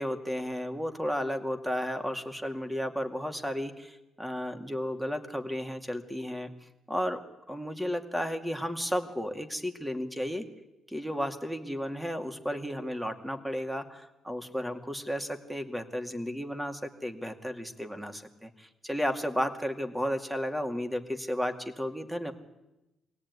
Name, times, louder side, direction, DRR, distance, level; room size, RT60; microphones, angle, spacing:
voice 1, 0.0-7.2 7.5-10.5 10.9-22.3, equal, 5° right, 6 dB, 2.4 m, -33 dB
25.0 x 17.5 x 9.6 m, 0.98 s
cardioid pair, 90°, 0 cm